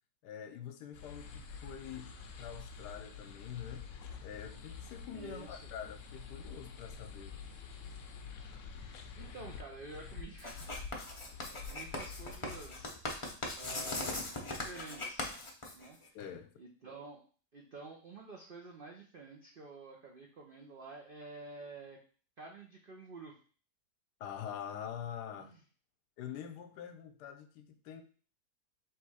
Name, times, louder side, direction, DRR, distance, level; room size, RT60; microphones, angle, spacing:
voice 1, 0.2-3.9 4.2-7.4 16.1-16.5 24.2-25.6 26.2-28.0, left 9 dB, 85° left, 1.2 m, -45 dB
sound 1, 0.9-12.9, left 5 dB, 65° left, 0.8 m, -48 dB
voice 2, 5.1-5.7 9.2-10.7 11.7-13.2 13.5-15.3 15.7-16.2 16.6-17.2 17.5-22.0 22.4-23.4 25.4-25.6, right 3 dB, 75° right, 0.4 m, -49 dB
Writing, 10.4-16.2, left 2 dB, 40° left, 0.4 m, -40 dB
3.2 x 3.1 x 4.7 m
omnidirectional pair, 1.8 m